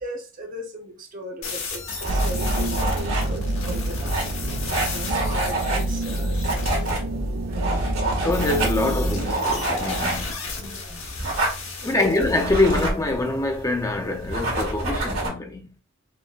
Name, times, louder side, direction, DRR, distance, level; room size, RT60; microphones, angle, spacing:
voice 1, 0.0-4.2 4.9-8.3 10.6-11.1 11.8-12.2, equal, 40° right, 0.9 m, -37 dB
sound 1, 1.4-6.9 8.3-12.8, left 3 dB, 75° left, 1.3 m, -34 dB
sound 2, 1.7-15.3, right 2 dB, 90° right, 2.0 m, -28 dB
sound 3, 2.1-9.3, right 1 dB, 70° right, 0.5 m, -27 dB
voice 2, 8.2-10.3 11.8-15.6, left 2 dB, 15° left, 0.5 m, -24 dB
6.0 x 2.1 x 2.3 m
head